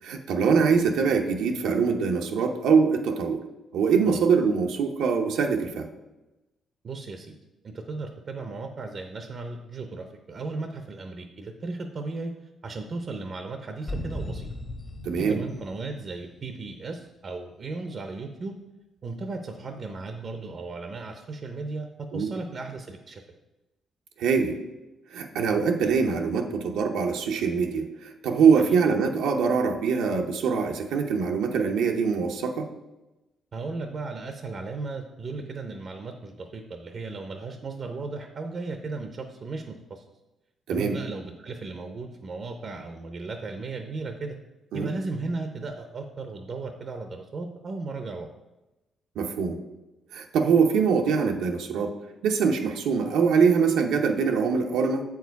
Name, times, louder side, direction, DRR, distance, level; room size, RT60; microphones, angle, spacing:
voice 1, 0.0-3.4 3.7-5.9 15.0-15.4 22.1-22.3 24.2-24.6 25.1-32.7 40.7-41.0 44.7-44.9 49.2-49.6 50.1-51.9 52.2-55.0, right 5 dB, 85° right, 3 dB, 0.7 m, -23 dB
voice 2, 6.8-7.4 7.6-12.3 12.6-14.5 15.2-18.5 19.0-23.2 28.6-28.7 33.5-40.0 40.7-44.4 44.7-48.3, right 3 dB, 45° right, 5 dB, 0.6 m, -35 dB
sound 1, 13.9-16.6, left 1 dB, 30° left, 1.0 m, -37 dB
7.6 x 4.7 x 4.6 m, 1.0 s
cardioid pair, 90°, 0 cm